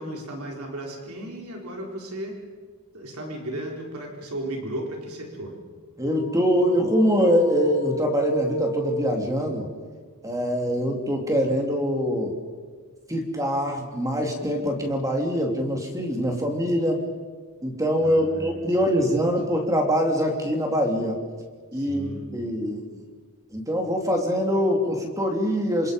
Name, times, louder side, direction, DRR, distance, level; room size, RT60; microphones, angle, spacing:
voice 1, 0.0-2.4 2.9-5.6 18.0-18.8 21.7-22.3, right 1 dB, 70° right, 0 dB, 4.6 m, -35 dB
sound 1, 6.0-9.6, right 2 dB, 85° left, 2.4 m, -32 dB
voice 2, 6.0-9.7 10.2-12.3 13.1-17.0 17.6-21.2 21.7-23.0 23.5-25.9, equal, 15° right, 2 dB, 3.5 m, -24 dB
28.0 x 26.5 x 5.5 m, 1.5 s
head